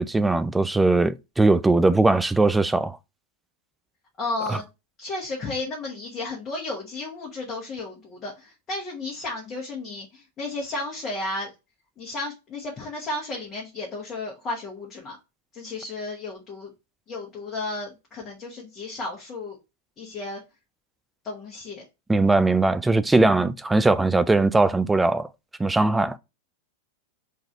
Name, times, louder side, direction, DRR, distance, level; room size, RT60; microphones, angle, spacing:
voice 1, 0.0-3.0 4.5-4.6 22.1-25.3 25.6-26.2, right 2 dB, 10° right, 0.3 m, -20 dB
voice 2, 4.2-4.7 5.0-11.5 12.0-15.2 15.5-16.7 17.1-19.6 20.0-20.4 21.2-21.8, left 2 dB, 25° left, 1.4 m, -33 dB
3.8 x 2.8 x 4.6 m
figure-of-eight pair, 90°, 0 cm